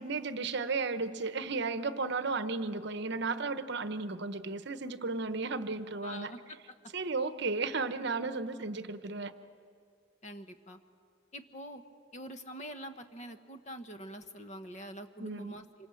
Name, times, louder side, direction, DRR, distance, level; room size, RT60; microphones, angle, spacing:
voice 1, 0.0-6.3 6.9-9.3 15.2-15.6, right 3 dB, 60° right, 11 dB, 1.0 m, -34 dB
voice 2, 6.0-6.6 10.2-10.8 11.3-11.8 12.1-15.9, equal, 35° left, 8 dB, 1.2 m, -45 dB
26.5 x 25.0 x 7.7 m, 2.3 s
head